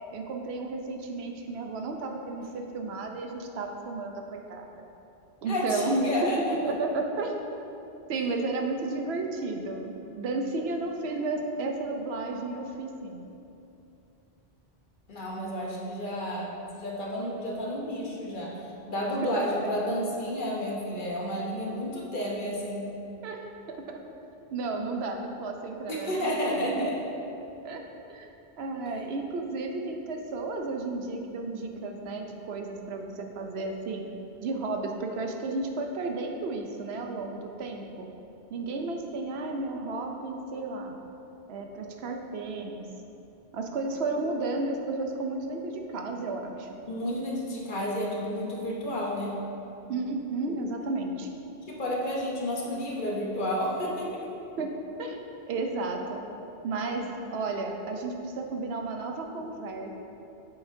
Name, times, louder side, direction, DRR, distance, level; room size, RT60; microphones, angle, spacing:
voice 1, 0.1-4.8 5.4-6.0 6.6-7.4 8.1-13.2 23.2-24.0 24.5-26.9 27.6-27.8 28.1-28.3 28.6-34.1 34.4-38.1 38.5-40.9 41.5-42.9 43.5-46.8 49.9-51.3 54.6-54.7 55.0-56.2 56.6-59.9, right 3 dB, 75° right, 3 dB, 0.9 m, -33 dB
voice 2, 5.5-6.5 15.1-18.6 18.9-22.9 25.9-26.9 46.9-49.3 51.7-54.1, equal, 50° left, -3 dB, 1.0 m, -31 dB
8.1 x 5.8 x 2.6 m, 2.9 s
omnidirectional pair, 1.1 m